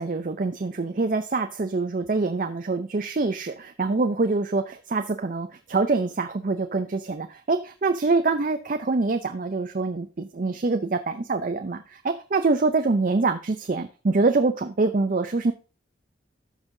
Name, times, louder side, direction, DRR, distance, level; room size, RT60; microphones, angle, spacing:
voice 1, 0.0-15.5, right 3 dB, 45° right, 8 dB, 0.5 m, -25 dB
13.0 x 5.5 x 2.6 m, 0.33 s
head